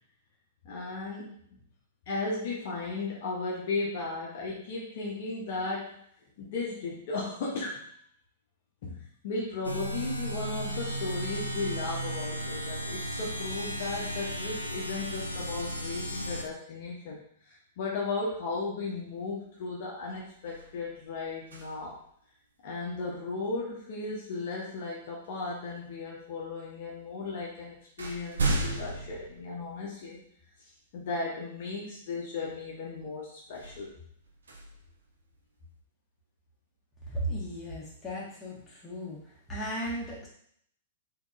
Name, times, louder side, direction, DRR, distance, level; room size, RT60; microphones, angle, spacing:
voice 1, 0.6-1.6 2.1-6.0 6.4-7.9 8.8-22.0 22.6-30.2 30.9-33.9, left 3 dB, 50° left, -3 dB, 0.7 m, -36 dB
sound 1, 9.6-16.4, right 1 dB, 85° left, 0.4 m, -35 dB
sound 2, 19.4-19.7 20.0-22.1 24.3-24.4 25.2-26.0 26.9-27.0 27.4-30.2 30.8-30.9 33.5-35.6, right 2 dB, 65° right, 0.6 m, -36 dB
voice 2, 37.0-40.3, equal, 10° left, -6 dB, 1.2 m, -36 dB
3.7 x 2.9 x 2.4 m, 0.65 s
figure-of-eight pair, 105°, 0 cm